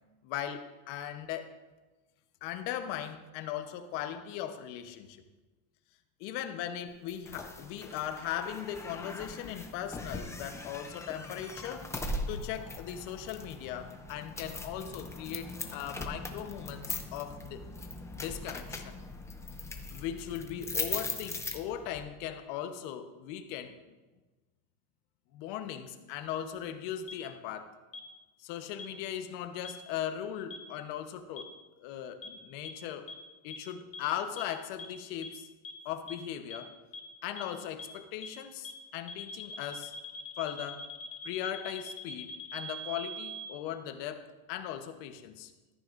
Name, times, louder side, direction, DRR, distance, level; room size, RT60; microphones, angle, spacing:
voice 1, 0.2-1.6 2.4-5.2 6.2-11.9 12.3-17.6 18.1-19.0 19.9-23.8 25.3-27.8 28.4-31.5 31.8-33.1 33.4-35.5 35.8-36.7 37.2-39.9 40.4-40.9 41.2-45.5, left 10 dB, 65° left, 8 dB, 1.1 m, -38 dB
sound 1, 7.1-22.0, left 2 dB, 5° left, 0.4 m, -40 dB
sound 2, 27.1-27.2 27.9-28.0 28.8-28.9 29.6-29.7 30.5-30.6 31.4-31.5 32.2-32.3 32.6-32.7 33.1-33.2 33.5-33.6 33.9-34.0 34.4-34.5 34.8-34.9 35.2-35.3 35.6-35.7 36.1-36.2 36.5-36.6 36.9-37.0 37.4-37.5 37.8-37.9 38.2-38.3 38.6-38.7 39.1-43.5, left 1 dB, 30° left, 1.0 m, -41 dB
13.5 x 9.4 x 2.6 m, 1.2 s
supercardioid pair, 145°, 44 cm